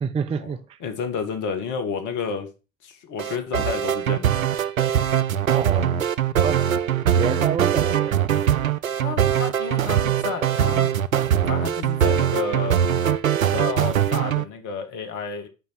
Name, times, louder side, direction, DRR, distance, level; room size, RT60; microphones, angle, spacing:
voice 1, 0.0-0.8 5.5-6.0 6.4-6.7 7.1-8.2, right 6 dB, 15° right, 0.5 m, -28 dB
voice 2, 0.8-2.5 2.8-4.3 9.0-10.9 11.5-12.8 13.4-15.5, left 5 dB, 50° left, 2.0 m, -30 dB
sound 1, 3.2-14.4, right 9 dB, 85° right, 0.5 m, -22 dB
8.1 x 5.2 x 5.8 m
figure-of-eight pair, 65°, 40 cm